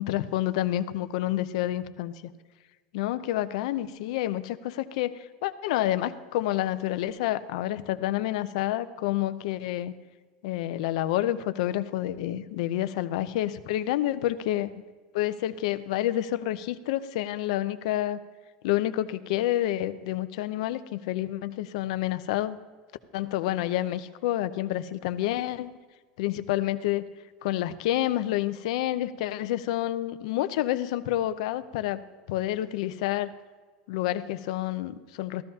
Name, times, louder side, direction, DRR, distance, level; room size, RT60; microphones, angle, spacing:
voice 1, 0.0-2.3 2.9-9.9 10.4-14.7 15.1-18.2 18.6-22.6 23.1-25.7 26.2-27.0 27.4-32.0 32.3-33.3 33.9-35.4, left 14 dB, 70° left, 13 dB, 0.6 m, -29 dB
14.5 x 13.5 x 2.8 m, 1.4 s
supercardioid pair, 140°, 4 cm